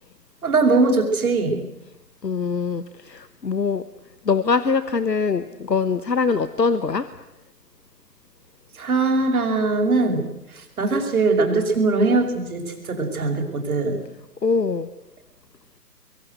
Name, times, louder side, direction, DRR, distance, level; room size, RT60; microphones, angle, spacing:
voice 1, 0.4-1.6 8.8-10.2 10.8-14.0, right 3 dB, 60° right, 3 dB, 5.6 m, -21 dB
voice 2, 2.2-3.8 4.2-7.1 14.4-14.9, left 5 dB, 90° left, 13 dB, 1.3 m, -23 dB
24.0 x 22.5 x 8.1 m, 0.87 s
figure-of-eight pair, 140°, 48 cm